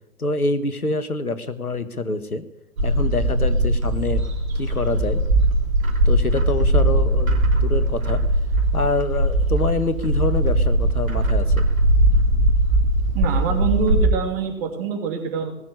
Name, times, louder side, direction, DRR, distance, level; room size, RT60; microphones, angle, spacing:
voice 1, 0.2-2.4 2.8-4.2 4.5-5.2 6.0-8.2 8.7-11.6, left 2 dB, 90° left, 13 dB, 1.5 m, -26 dB
Bird, 2.8-14.1, right 1 dB, 70° right, 3.0 m, -20 dB
voice 2, 13.1-15.6, right 6 dB, 40° right, 5 dB, 3.3 m, -25 dB
20.0 x 6.6 x 9.9 m, 0.85 s
figure-of-eight pair, 110°, 43 cm